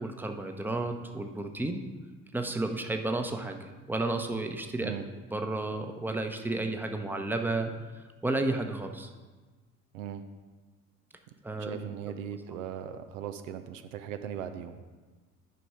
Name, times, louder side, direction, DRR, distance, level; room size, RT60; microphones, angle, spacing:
voice 1, 0.0-1.8 2.3-4.9 5.3-9.1 11.4-11.8, right 2 dB, 5° right, 5 dB, 0.9 m, -32 dB
voice 2, 11.6-14.8, right 9 dB, 70° right, 8 dB, 0.7 m, -38 dB
11.0 x 5.2 x 4.8 m, 1.3 s
figure-of-eight pair, 55°, 41 cm